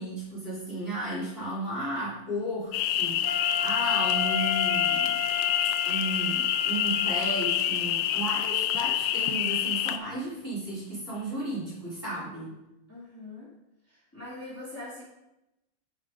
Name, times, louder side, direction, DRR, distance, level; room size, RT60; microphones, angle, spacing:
voice 1, 0.0-5.2 5.9-12.5, right 1 dB, 25° right, -8 dB, 3.6 m, -34 dB
sound 1, 2.7-10.0, left 11 dB, 75° left, 1.1 m, -27 dB
Wind instrument woodwind instrument, 3.2-7.5, left 6 dB, 55° left, 2.4 m, -33 dB
voice 2, 12.1-12.5 12.9-13.5 13.9-15.0, left 2 dB, 5° left, -8 dB, 2.6 m, -43 dB
10.5 x 5.0 x 5.1 m, 0.93 s
omnidirectional pair, 2.4 m